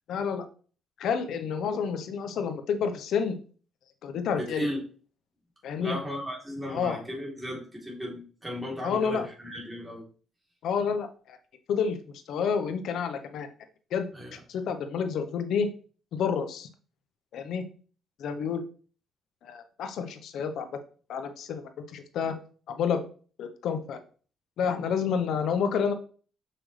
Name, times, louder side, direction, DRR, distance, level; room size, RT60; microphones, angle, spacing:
voice 1, 0.1-0.4 1.0-3.4 4.0-4.7 5.6-6.0 6.7-7.0 8.8-9.3 10.6-11.4 11.7-12.0 12.3-13.5 13.9-14.1 14.5-15.7 16.1-16.7 17.3-17.6 18.2-18.6 19.4-20.7 21.1-22.3 22.7-23.0 23.4-24.0 24.6-25.9, left 6 dB, 75° left, 8 dB, 0.9 m, -29 dB
voice 2, 4.3-4.8 5.8-10.0 14.1-14.4, equal, 10° right, -3 dB, 3.3 m, -36 dB
6.3 x 6.0 x 3.3 m, 0.41 s
cardioid pair, 90°, 0 cm